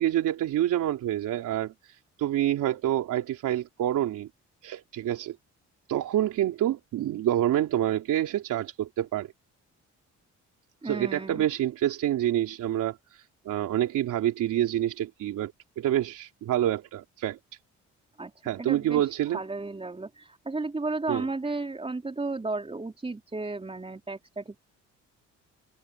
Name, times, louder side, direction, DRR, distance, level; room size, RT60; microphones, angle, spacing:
voice 1, 0.0-4.3 4.6-5.3 5.9-9.3 10.8-15.5 15.8-17.4 18.4-19.4 21.1-21.2, right 12 dB, 80° right, 3.5 m, -27 dB
voice 2, 10.8-11.4 18.2-24.6, right 3 dB, 20° right, 3.7 m, -34 dB
open air
cardioid pair, 90°, 30 cm